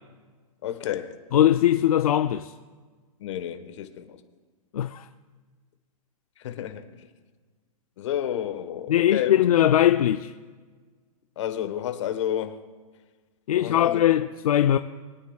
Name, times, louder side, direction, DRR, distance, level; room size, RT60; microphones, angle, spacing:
voice 1, 0.6-1.1 3.2-4.2 6.4-6.8 8.0-9.4 11.4-12.6 13.5-14.0, left 10 dB, 55° left, 1.3 m, -30 dB
voice 2, 1.3-2.5 4.7-5.1 8.9-10.3 13.5-14.8, left 11 dB, 75° left, 0.5 m, -20 dB
23.5 x 9.5 x 2.4 m
hypercardioid pair, 160°, 19 cm